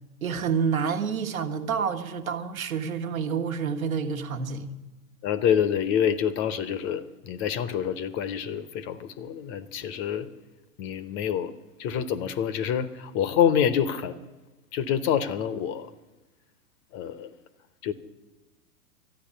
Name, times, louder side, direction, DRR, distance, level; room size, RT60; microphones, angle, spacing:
voice 1, 0.2-4.7, right 6 dB, 70° right, 1.4 m, -28 dB
voice 2, 5.2-10.3 10.8-11.5 11.8-14.2 14.7-15.9 16.9-17.3 17.8-17.9, left 8 dB, 30° left, 0.7 m, -27 dB
12.5 x 10.0 x 10.0 m
figure-of-eight pair, 100°, 43 cm